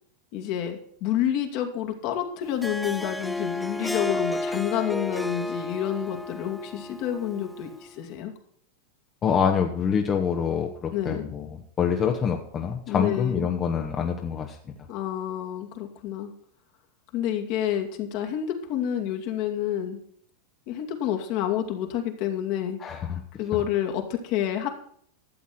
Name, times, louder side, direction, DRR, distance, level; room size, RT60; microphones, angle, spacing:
voice 1, 0.3-8.3 10.9-11.2 12.9-13.5 14.9-16.3 17.1-20.0 20.7-22.8 23.4-24.7, left 10 dB, 55° left, 4 dB, 2.2 m, -29 dB
Harp, 2.4-7.9, left 2 dB, ahead, 0.9 m, -32 dB
voice 2, 9.2-14.6 22.8-23.2, left 7 dB, 30° left, 3 dB, 1.3 m, -26 dB
13.0 x 7.3 x 6.0 m, 0.63 s
hypercardioid pair, 115°, 0 cm